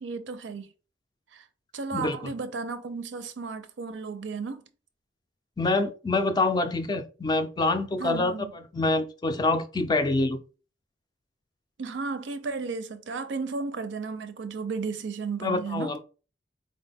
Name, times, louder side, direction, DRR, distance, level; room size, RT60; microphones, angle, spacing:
voice 1, 0.0-0.7 1.3-1.4 1.7-4.6 8.0-8.5 11.8-15.9, right 4 dB, 85° right, 0.5 m, -34 dB
voice 2, 1.9-2.3 5.6-10.4 15.4-16.0, left 2 dB, 25° left, 0.3 m, -26 dB
4.0 x 2.1 x 3.3 m
head